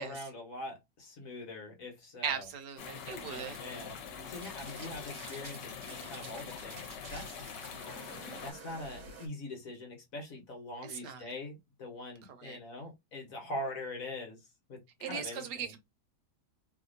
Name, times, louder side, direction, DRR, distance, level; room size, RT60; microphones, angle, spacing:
voice 1, 0.0-2.5 3.3-4.0 4.3-7.4 8.4-15.8, left 1 dB, 55° left, 1.5 m, -43 dB
voice 2, 2.2-3.6 10.9-11.3 12.4-12.6 15.0-15.8, right 7 dB, 70° right, 1.3 m, -38 dB
sound 1, 2.3-9.3, right 2 dB, 55° right, 1.5 m, -51 dB
sound 2, 2.8-8.5, left 6 dB, 75° left, 1.4 m, -44 dB
3.4 x 2.7 x 2.5 m
omnidirectional pair, 1.9 m